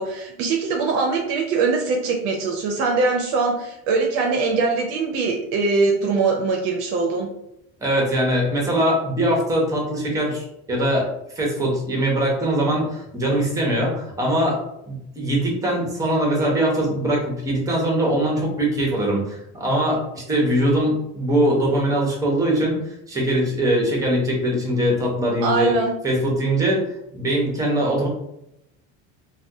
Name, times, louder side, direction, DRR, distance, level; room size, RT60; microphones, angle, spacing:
voice 1, 0.0-7.3 25.4-25.9, right 4 dB, 50° right, 1 dB, 0.5 m, -22 dB
voice 2, 7.8-11.1 11.3-14.6 14.9-25.7 26.0-26.8 27.1-28.1, right 1 dB, 10° right, -2 dB, 0.6 m, -22 dB
3.5 x 2.2 x 2.7 m, 0.82 s
cardioid pair, 170°, 30 cm